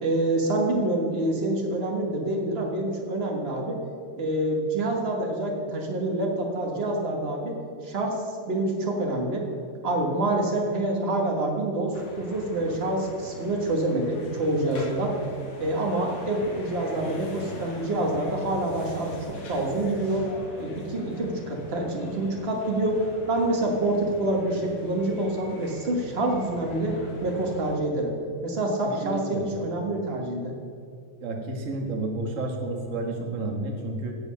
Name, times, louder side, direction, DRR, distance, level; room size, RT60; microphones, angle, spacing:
voice 1, 0.0-3.8 4.2-7.6 7.8-9.5 9.8-15.2 15.6-20.2 20.6-23.0 23.3-28.1 28.4-30.5, right 1 dB, 65° right, 0 dB, 0.6 m, -27 dB
sound 1, 11.9-27.7, left 1 dB, 90° left, 3.9 m, -42 dB
voice 2, 28.8-29.4 31.2-34.2, right 2 dB, 45° right, 2 dB, 1.0 m, -31 dB
16.0 x 5.7 x 6.3 m, 2.4 s
omnidirectional pair, 3.4 m